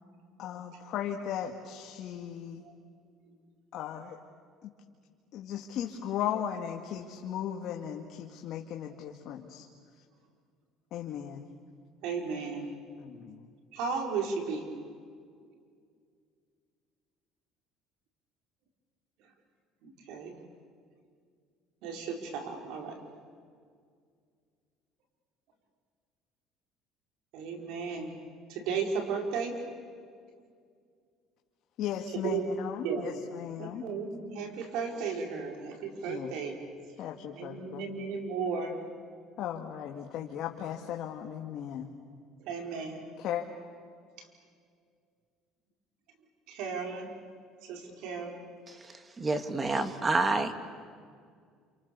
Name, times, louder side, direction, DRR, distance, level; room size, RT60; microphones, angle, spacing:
voice 1, 0.4-2.6 3.7-4.2 4.6-4.7 5.3-9.7 10.9-11.5 13.0-13.5 31.8-33.8 36.1-36.4 37.0-37.9 39.4-41.9 43.2-43.4, left 9 dB, 60° left, 2 dB, 2.0 m, -37 dB
voice 2, 12.0-12.7 13.7-14.7 19.8-20.4 21.8-23.0 27.3-28.2 28.5-29.5 32.1-32.5 32.8-33.1 33.6-36.6 37.3-38.8 42.4-43.1 44.2-44.3 46.5-47.1 47.6-48.4, right 5 dB, 75° right, 2 dB, 5.1 m, -35 dB
voice 3, 48.7-50.5, right 3 dB, 25° right, 8 dB, 2.1 m, -29 dB
29.0 x 28.5 x 7.0 m, 2.1 s
cardioid pair, 115°, 0 cm